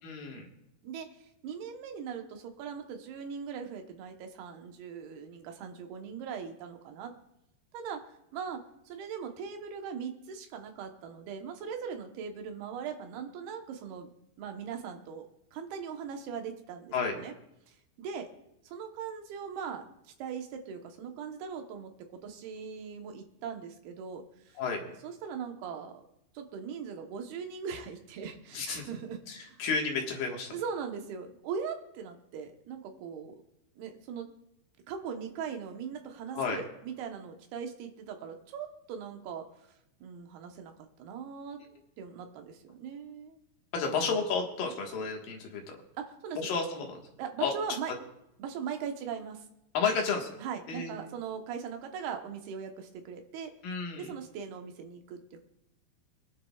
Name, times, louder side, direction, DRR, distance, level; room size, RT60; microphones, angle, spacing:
voice 1, 0.0-0.5 16.9-17.2 24.6-24.8 28.5-28.9 29.3-30.5 36.3-36.6 43.7-45.8 46.4-47.0 47.4-47.5 49.7-50.3 50.7-50.9 53.6-54.1, left 5 dB, 65° left, 1 dB, 3.0 m, -31 dB
voice 2, 0.8-7.1 7.7-8.0 8.3-14.1 14.4-17.3 17.7-18.3 18.6-19.8 20.2-21.9 22.2-24.6 25.0-26.0 26.3-29.6 30.5-33.4 33.8-34.3 34.9-40.7 41.0-41.6 42.0-43.4 43.8-43.9 46.0-46.5 47.2-47.9 48.4-49.4 50.4-53.5 54.0-55.4, right 7 dB, 75° right, 5 dB, 3.0 m, -40 dB
24.0 x 10.0 x 2.4 m, 0.84 s
omnidirectional pair, 4.6 m